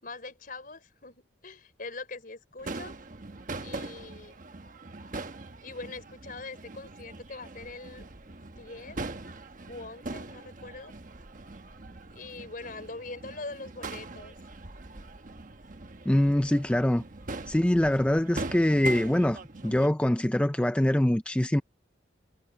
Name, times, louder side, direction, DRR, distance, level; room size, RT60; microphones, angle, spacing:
voice 1, 0.0-3.0 3.6-4.4 5.6-8.1 8.5-9.0 9.7-10.9 12.1-14.3, left 3 dB, 50° left, 4.4 m, -42 dB
Crowd / Fireworks, 2.6-19.9, right 2 dB, 45° right, 1.1 m, -42 dB
voice 2, 16.1-17.0 17.5-21.6, left 1 dB, 5° left, 0.4 m, -24 dB
head